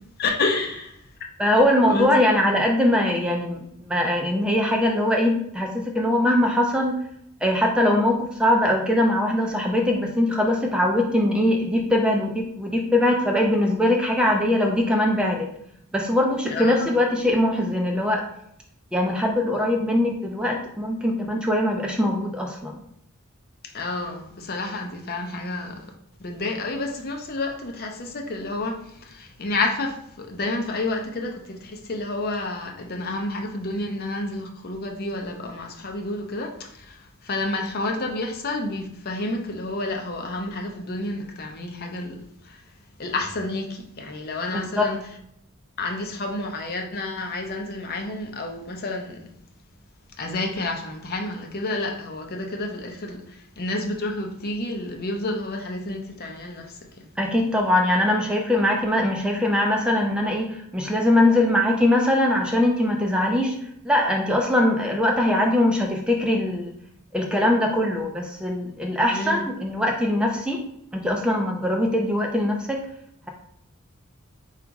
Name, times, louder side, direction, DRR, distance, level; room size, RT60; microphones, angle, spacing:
voice 1, 0.2-1.0 1.9-2.1 16.5-16.9 23.7-25.8 26.2-42.6 43.0-45.0 45.8-49.3 50.2-57.1 69.1-69.4, left 2 dB, 45° left, 0.6 m, -30 dB
voice 2, 1.4-7.0 7.4-15.5 15.9-18.2 18.9-22.8 44.5-44.9 57.2-63.6 63.8-66.7 67.1-70.6 70.9-72.8, left 1 dB, 5° right, 0.4 m, -22 dB
4.0 x 2.4 x 4.6 m
head